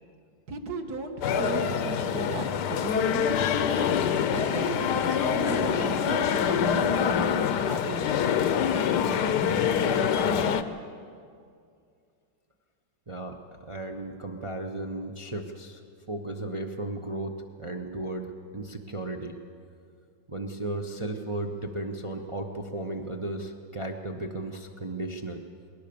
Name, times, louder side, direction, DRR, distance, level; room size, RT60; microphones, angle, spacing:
voice 1, 0.5-3.3 4.3-8.2, right 3 dB, 55° right, 6 dB, 1.8 m, -36 dB
sound 1, 1.2-10.6, left 7 dB, 65° left, 1.2 m, -25 dB
voice 2, 13.1-15.8 16.1-19.3 20.3-25.4, right 2 dB, 35° right, 2 dB, 0.4 m, -35 dB
20.5 x 18.5 x 7.0 m, 2.3 s
omnidirectional pair, 2.2 m